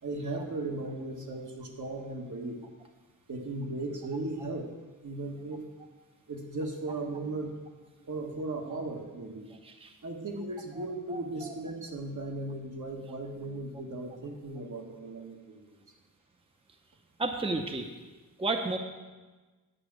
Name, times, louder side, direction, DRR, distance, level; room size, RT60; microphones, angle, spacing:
voice 1, 0.0-2.6 3.3-4.7 5.0-5.6 6.3-7.5 8.0-9.5 10.0-15.8, right 2 dB, 60° right, 1 dB, 1.7 m, -37 dB
voice 2, 11.1-11.5 17.2-17.8 18.4-18.8, right 3 dB, 15° right, 4 dB, 0.7 m, -32 dB
10.0 x 5.9 x 7.6 m, 1.3 s
wide cardioid pair, 105°, 34 cm